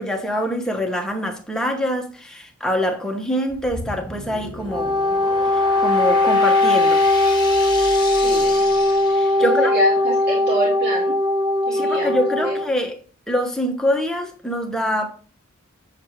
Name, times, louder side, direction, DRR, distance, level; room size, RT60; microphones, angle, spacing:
voice 1, 0.0-5.0 5.5-7.1 9.1-9.7 11.7-13.0 13.3-15.2, equal, 5° left, 1.1 m, -25 dB
sound 1, 3.5-9.8, left 2 dB, 20° left, 1.4 m, -33 dB
Wind instrument woodwind instrument, 4.6-12.7, left 2 dB, 20° right, 0.7 m, -19 dB
voice 2, 8.2-8.6 9.4-11.2 11.7-12.6, right 2 dB, 50° right, 2.0 m, -26 dB
7.6 x 6.5 x 3.1 m
head